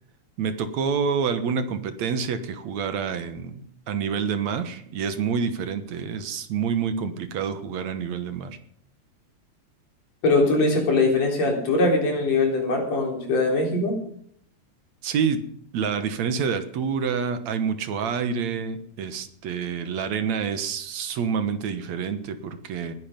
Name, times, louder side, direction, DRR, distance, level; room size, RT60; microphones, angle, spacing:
voice 1, 0.4-8.6 15.0-15.4 15.7-22.9, right 6 dB, 70° right, 10 dB, 2.5 m, -27 dB
voice 2, 10.2-14.0, left 2 dB, 60° left, 1 dB, 4.9 m, -21 dB
20.0 x 11.0 x 5.2 m, 0.67 s
omnidirectional pair, 3.3 m